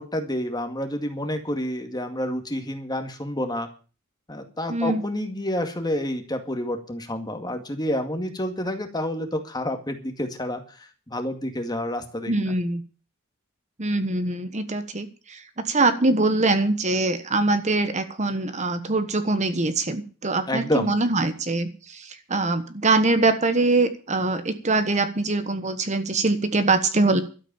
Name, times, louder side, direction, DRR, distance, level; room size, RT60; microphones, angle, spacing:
voice 1, 0.0-3.7 4.3-12.5 20.5-20.9, left 1 dB, 20° left, 6 dB, 2.0 m, -29 dB
voice 2, 4.7-5.0 12.3-12.8 13.8-27.2, right 2 dB, 35° right, 10 dB, 1.3 m, -23 dB
12.5 x 8.5 x 8.8 m, 0.37 s
head